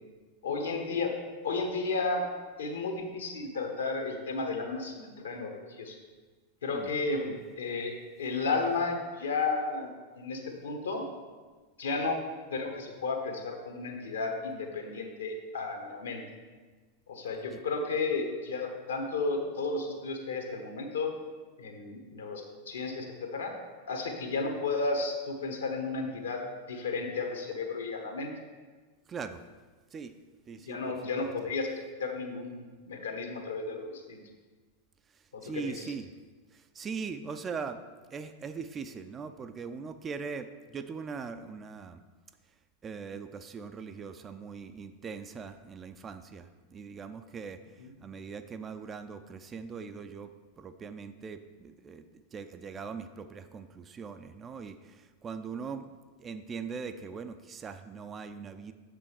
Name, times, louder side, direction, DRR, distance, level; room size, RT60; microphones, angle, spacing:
voice 1, 0.4-1.1 1.4-2.2 2.6-5.9 6.6-7.9 8.2-9.9 10.2-11.0 11.8-12.2 12.5-16.2 17.1-21.1 21.6-23.5 23.9-28.3 30.7-34.2 35.3-35.9 47.8-47.9, left 3 dB, 70° left, 3 dB, 1.1 m, -33 dB
voice 2, 29.1-29.4 29.9-30.1 30.5-31.0 35.4-36.1 36.5-37.8 38.1-42.0 42.8-47.6 48.0-52.0 52.3-55.9 56.2-58.7, right 5 dB, 20° right, 9 dB, 0.4 m, -41 dB
6.9 x 5.1 x 4.9 m, 1.4 s
figure-of-eight pair, 90°, 0 cm